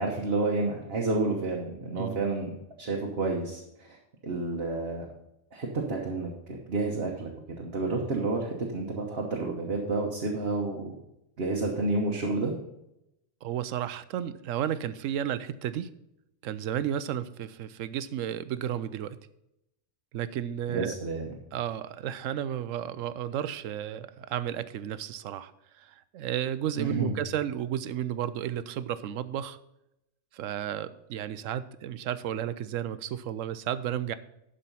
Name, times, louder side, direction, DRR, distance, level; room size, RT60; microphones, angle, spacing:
voice 1, 0.0-4.0 4.2-5.1 5.5-10.9 11.4-12.5 20.7-21.3 26.8-27.1, right 3 dB, 55° right, 0 dB, 1.4 m, -30 dB
voice 2, 13.4-15.9 16.4-19.2 20.1-20.9 21.5-29.6 30.3-34.1, right 10 dB, 80° right, 14 dB, 1.0 m, -33 dB
12.0 x 5.1 x 5.5 m, 0.84 s
omnidirectional pair, 1.3 m